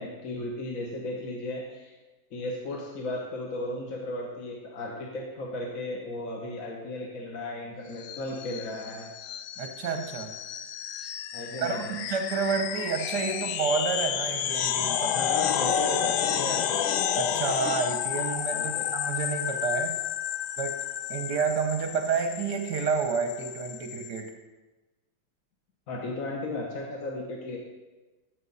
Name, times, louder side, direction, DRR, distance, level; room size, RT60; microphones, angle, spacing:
voice 1, 0.0-2.0 2.3-9.1 11.3-11.9 15.1-16.9 18.5-18.8 25.9-27.6, left 1 dB, 50° left, -1 dB, 1.2 m, -35 dB
sound 1, 8.0-24.2, left 9 dB, 90° left, 1.6 m, -31 dB
voice 2, 9.6-10.4 11.6-15.1 17.1-20.0 20.6-20.8 21.1-24.3, right 5 dB, 60° right, 5 dB, 1.1 m, -30 dB
13.5 x 6.4 x 4.0 m, 1.2 s
omnidirectional pair, 2.4 m